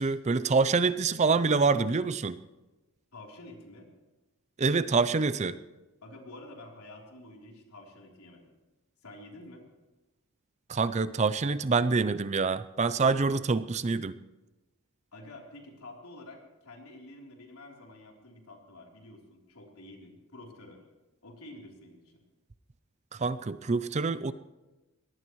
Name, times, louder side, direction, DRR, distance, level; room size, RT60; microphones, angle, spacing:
voice 1, 0.0-2.4 4.6-5.6 10.7-14.1 23.1-24.3, right 4 dB, 30° right, 14 dB, 0.5 m, -26 dB
voice 2, 3.1-3.9 6.0-8.5 9.0-9.7 15.1-20.8 21.2-22.2, left 2 dB, 80° left, 0 dB, 3.5 m, -49 dB
23.0 x 18.0 x 3.1 m, 1.1 s
head